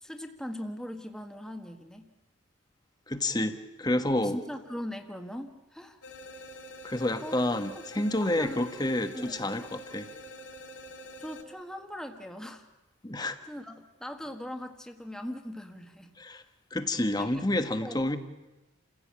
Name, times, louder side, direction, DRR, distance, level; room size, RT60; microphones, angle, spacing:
voice 1, 0.0-2.1 4.2-6.0 7.2-7.4 7.7-8.7 9.1-9.3 11.2-12.7 13.2-16.1 17.2-17.4 17.8-18.0, equal, 5° left, 5 dB, 1.5 m, -40 dB
voice 2, 3.1-4.4 6.8-10.1 13.0-13.4 16.2-16.4 16.7-18.2, left 1 dB, 20° left, 9 dB, 1.4 m, -29 dB
sound 1, 6.0-11.4, equal, 70° left, 5.4 m, -46 dB
29.5 x 16.0 x 8.7 m, 1.1 s
head